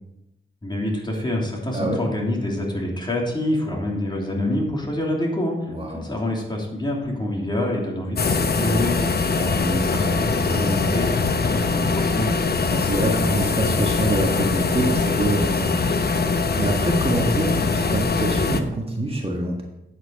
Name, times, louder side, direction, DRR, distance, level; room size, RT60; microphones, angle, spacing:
voice 1, 0.6-12.3, left 1 dB, 20° left, -2 dB, 3.1 m, -27 dB
voice 2, 5.7-6.0 9.6-10.2 12.7-19.6, right 1 dB, 25° right, 0 dB, 1.7 m, -26 dB
sound 1, 8.2-18.6, left 4 dB, 50° left, 0.9 m, -22 dB
9.1 x 8.2 x 4.7 m, 0.88 s
cardioid pair, 80°, 21 cm